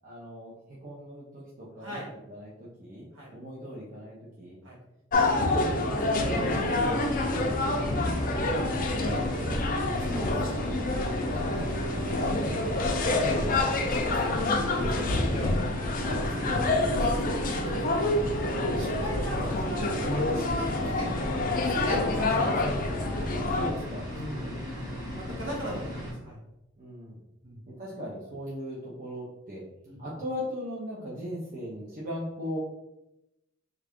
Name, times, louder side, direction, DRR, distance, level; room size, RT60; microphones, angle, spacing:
voice 1, 0.0-2.0 2.3-2.5 2.8-4.6 5.5-7.8 8.8-10.2 10.5-10.7 11.2-13.3 16.0-16.2 21.8-22.2 23.3-24.1 24.3-25.4 26.8-27.2 27.7-29.6 30.0-32.6, equal, 45° right, -6 dB, 0.7 m, -39 dB
sound 1, 5.1-23.7, left 2 dB, 40° left, 0.4 m, -27 dB
sound 2, 6.2-26.1, left 1 dB, 15° right, 1.1 m, -38 dB
voice 2, 13.0-15.5 16.3-18.3 18.8-21.1 21.5-23.1 24.1-24.5 25.2-26.4 27.4-27.6 29.9-30.0, right 1 dB, 65° right, -3 dB, 1.5 m, -38 dB
3.3 x 2.5 x 3.5 m, 0.90 s
head